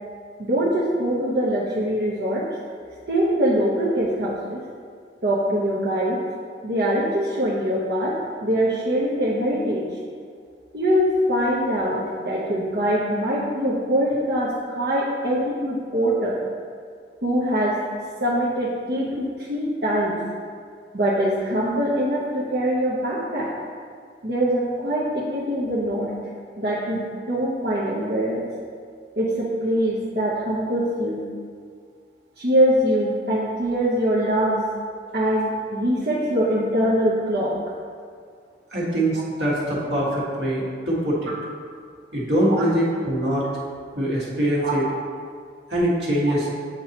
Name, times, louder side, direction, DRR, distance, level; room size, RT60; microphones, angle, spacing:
voice 1, 0.4-2.5 3.1-4.6 5.2-6.2 6.6-9.8 10.7-16.4 17.2-17.8 18.2-20.2 20.9-23.5 24.2-26.1 26.6-28.5 29.2-31.2 32.4-34.6 35.1-37.6 42.6-42.7 44.6-44.7, equal, 60° right, -8 dB, 0.8 m, -23 dB
voice 2, 38.7-41.3 42.1-43.4 43.9-44.8 45.7-46.5, right 1 dB, 80° right, -6 dB, 1.6 m, -23 dB
8.2 x 4.6 x 2.9 m, 2.1 s
head